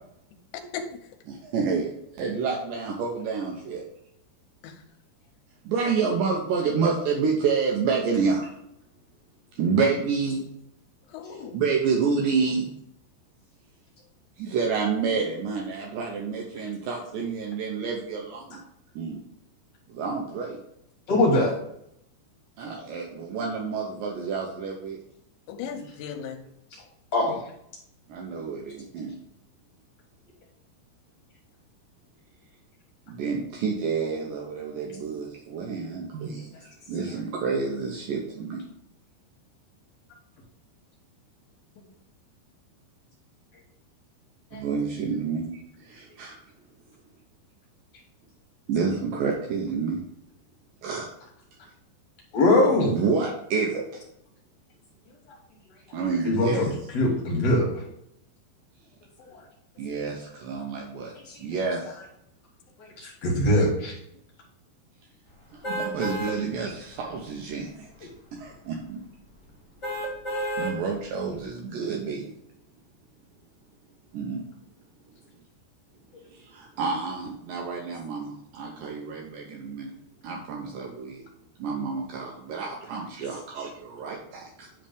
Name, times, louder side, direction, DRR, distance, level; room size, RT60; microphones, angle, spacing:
voice 1, 1.3-3.8 5.7-8.5 9.6-10.4 11.5-12.7 14.4-18.6 19.0-19.2 19.9-20.6 22.6-25.0 25.6-25.8 28.1-29.2 33.1-36.5 36.9-38.6 44.5-45.5 45.8-46.4 48.7-50.0 50.8-51.1 52.7-54.0 55.9-56.7 59.8-61.1 61.4-62.0 65.5-68.1 68.4-69.0 70.6-72.3 74.1-74.4 76.3-79.9 80.2-81.2 81.6-84.7, right 5 dB, 85° right, 0 dB, 1.9 m, -29 dB
voice 2, 11.1-11.6 25.5-26.5 41.8-41.9, left 8 dB, 85° left, 5 dB, 3.0 m, -37 dB
voice 3, 21.1-21.5 27.1-27.4 44.5-44.6 52.3-52.9 56.2-57.8 59.3-59.4 61.3-61.4 62.8-64.0, left 1 dB, 60° left, -2 dB, 1.9 m, -22 dB
sound 1, 65.6-66.4 66.9-67.0 69.8-70.8 71.3-71.4, right 1 dB, 30° left, 1.2 m, -30 dB
9.7 x 3.3 x 5.1 m, 0.78 s
omnidirectional pair, 5.1 m